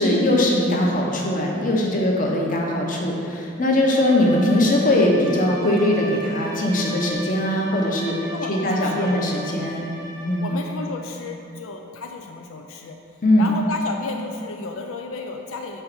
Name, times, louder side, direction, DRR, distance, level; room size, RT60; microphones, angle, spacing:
voice 1, 0.0-8.2 8.5-9.9 10.2-10.5 13.2-13.5, left 1 dB, 40° left, -1 dB, 0.8 m, -20 dB
Bowed string instrument, 3.7-10.8, equal, 20° right, 0.6 m, -37 dB
voice 2, 8.3-9.4 10.4-13.0 13.4-15.8, left 4 dB, 85° left, 3 dB, 0.4 m, -32 dB
5.5 x 3.9 x 6.0 m, 2.8 s
head